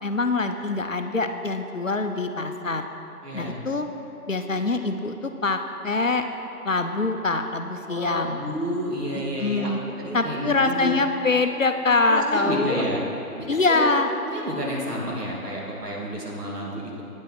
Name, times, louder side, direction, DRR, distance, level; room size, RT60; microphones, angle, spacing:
voice 1, 0.0-2.8 3.3-3.9 4.3-6.3 6.6-8.4 9.4-9.8 10.1-12.8 13.5-14.1, left 3 dB, 55° left, 6 dB, 0.6 m, -24 dB
voice 2, 3.2-3.6 7.9-9.7 10.0-10.9 12.1-13.0 13.7-13.9 14.3-17.0, equal, 75° right, -3 dB, 2.4 m, -30 dB
9.0 x 8.4 x 4.7 m, 2.9 s
figure-of-eight pair, 170°, 47 cm